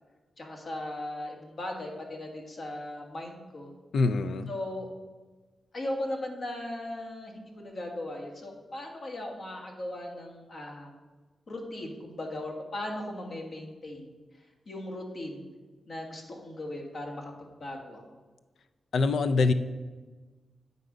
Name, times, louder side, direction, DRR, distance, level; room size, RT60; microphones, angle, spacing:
voice 1, 0.4-3.7 4.5-4.9 5.7-10.9 11.5-14.1 14.7-15.6 15.9-17.3 17.6-18.0, left 1 dB, 60° left, 1 dB, 1.5 m, -38 dB
voice 2, 3.9-4.5 18.9-19.5, left 3 dB, 80° left, 11 dB, 0.3 m, -24 dB
8.9 x 4.0 x 4.9 m, 1.3 s
cardioid pair, 55°, 0 cm